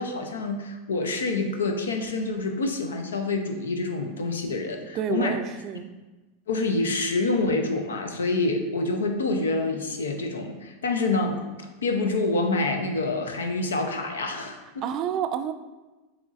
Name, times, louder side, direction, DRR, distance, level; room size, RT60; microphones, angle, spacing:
voice 1, 0.0-5.3 6.5-14.8, left 3 dB, 80° left, 5 dB, 0.6 m, -27 dB
voice 2, 4.9-5.9 14.8-15.5, right 9 dB, 45° right, 9 dB, 0.3 m, -29 dB
6.9 x 3.1 x 2.5 m, 1.2 s
hypercardioid pair, 90°, 0 cm